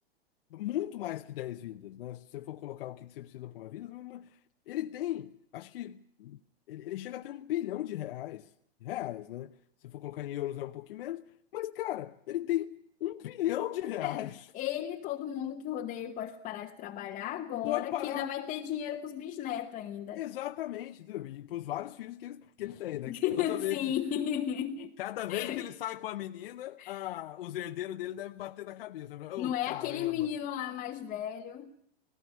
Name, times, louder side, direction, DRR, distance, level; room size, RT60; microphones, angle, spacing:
voice 1, 0.5-4.4 4.7-6.4 6.7-8.5 8.8-9.5 9.8-14.5 17.6-18.3 20.1-23.9 25.0-30.3, left 14 dB, 65° left, 0.8 m, -37 dB
voice 2, 14.5-20.2 23.1-24.9 25.3-25.7 26.8-27.0 29.4-31.7, left 10 dB, 25° left, 1.1 m, -34 dB
18.5 x 17.5 x 9.2 m
hypercardioid pair, 135°, 31 cm